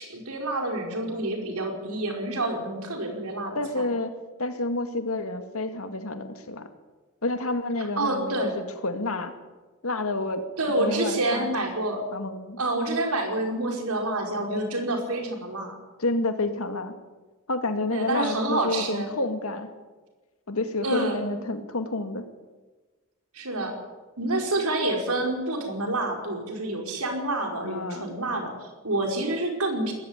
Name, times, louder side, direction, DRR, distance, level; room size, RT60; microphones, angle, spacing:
voice 1, 0.0-3.9 7.8-8.5 10.6-12.0 12.6-15.8 17.9-19.2 20.8-21.4 23.3-23.8 24.2-29.9, right 2 dB, 85° right, 2 dB, 5.0 m, -28 dB
voice 2, 3.5-4.1 4.4-6.7 7.2-9.3 9.8-10.5 10.8-11.5 12.1-12.6 16.0-16.9 17.5-19.7 20.5-22.3 27.6-28.2, left 2 dB, 75° left, 7 dB, 2.2 m, -29 dB
19.5 x 15.5 x 9.9 m, 1.3 s
head